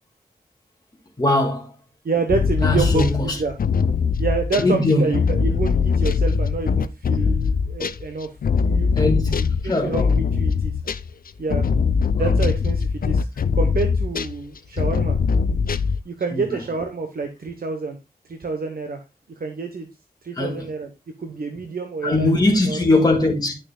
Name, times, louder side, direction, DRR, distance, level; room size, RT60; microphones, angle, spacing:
voice 1, 1.2-1.7 2.6-3.4 4.6-5.2 9.0-9.4 9.6-10.1 12.2-12.3 16.3-16.5 20.4-20.6 22.0-23.6, left 2 dB, 25° left, 1.9 m, -20 dB
voice 2, 2.0-3.6 4.2-10.7 11.4-11.6 12.2-13.3 13.5-15.2 16.0-18.0 18.3-19.0 19.4-19.9 20.2-20.9 21.2-22.3 22.7-23.0, right 4 dB, 65° right, 1.0 m, -28 dB
sound 1, 2.3-8.1 8.4-11.1 11.5-14.4 14.8-16.0, left 5 dB, 60° left, 0.5 m, -21 dB
10.5 x 6.4 x 2.2 m
wide cardioid pair, 90°, 16 cm